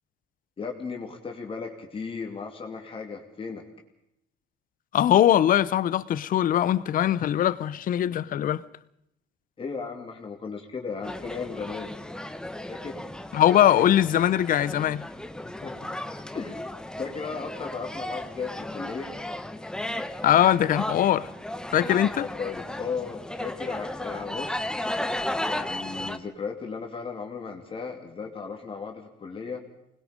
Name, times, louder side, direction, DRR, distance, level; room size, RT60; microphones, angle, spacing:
voice 1, 0.6-3.6 9.6-11.9 12.7-13.0 15.4-15.9 16.3-16.6 17.0-19.1 21.7-24.7 25.5-29.6, left 5 dB, 30° left, 2.7 m, -36 dB
voice 2, 4.9-8.6 13.3-15.0 20.2-21.3 21.7-22.3, left 11 dB, 55° left, 0.8 m, -21 dB
sound 1, 11.0-26.2, left 1 dB, 5° left, 1.0 m, -35 dB
25.5 x 20.5 x 5.2 m
cardioid pair, 110°, 17 cm